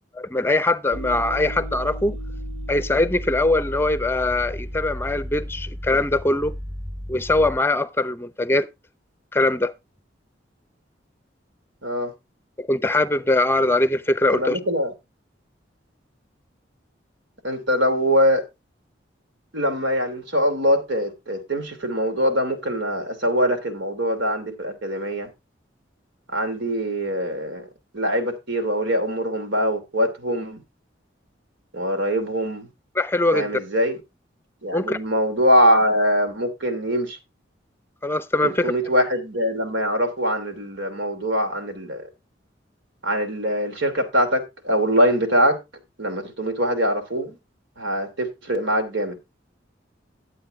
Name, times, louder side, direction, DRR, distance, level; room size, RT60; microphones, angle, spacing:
voice 1, 0.1-2.2 2.7-6.5 7.1-8.7 9.3-9.7 12.6-14.6 32.9-33.5 34.7-35.0 38.0-38.7, left 2 dB, 15° left, 0.6 m, -22 dB
sound 1, 0.9-7.6, equal, 10° right, 1.0 m, -33 dB
voice 2, 11.8-12.1 14.3-14.9 17.4-18.4 19.5-25.3 26.3-27.7 27.9-30.6 31.7-32.7 33.3-34.0 34.6-37.2 38.4-42.0 43.0-45.6 46.0-47.4 47.8-49.2, equal, 80° right, 2.8 m, -23 dB
11.5 x 7.9 x 3.6 m
head